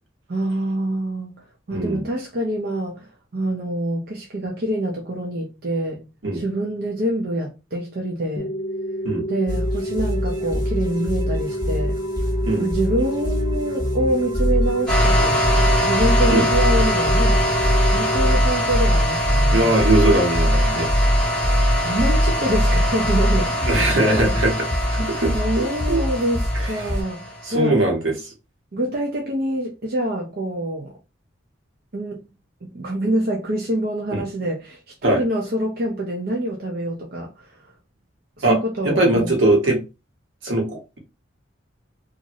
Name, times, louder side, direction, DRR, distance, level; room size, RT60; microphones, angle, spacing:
voice 1, 0.3-6.0 6.3-8.6 9.3-12.0 12.6-15.4 15.8-17.5 17.8-19.8 21.8-24.4 25.3-27.8 28.7-30.9 31.9-32.2 32.6-37.7 38.4-39.3, right 1 dB, 50° right, 0.6 m, -26 dB
voice 2, 1.7-2.0 6.2-6.4 9.0-9.2 12.4-12.6 16.3-16.5 19.5-20.9 23.7-24.5 24.9-26.0 26.5-26.7 27.4-28.1 34.1-34.2 35.0-35.2 38.4-38.6 38.8-39.8 40.4-41.0, right 2 dB, 75° right, 1.2 m, -20 dB
sound 1, 8.4-18.4, equal, 45° left, 0.5 m, -29 dB
sound 2, 9.5-27.0, equal, 20° right, 1.5 m, -22 dB
sound 3, 14.9-27.5, equal, 5° left, 1.2 m, -24 dB
2.5 x 2.5 x 3.0 m
head